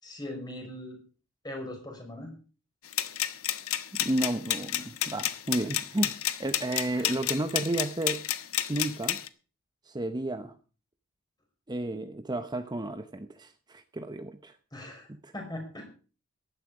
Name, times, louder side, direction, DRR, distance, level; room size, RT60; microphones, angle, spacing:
voice 1, 0.0-1.0 1.4-2.3 6.9-7.1 14.7-15.1 15.3-15.9, left 1 dB, 20° left, 3 dB, 5.3 m, -40 dB
sound 1, 2.9-9.3, left 12 dB, 75° left, 1.1 m, -31 dB
voice 2, 3.9-8.2 8.7-9.2 9.8-10.6 11.7-14.6 15.1-15.3, right 1 dB, 20° right, 9 dB, 0.8 m, -32 dB
15.0 x 11.5 x 4.9 m, 0.37 s
head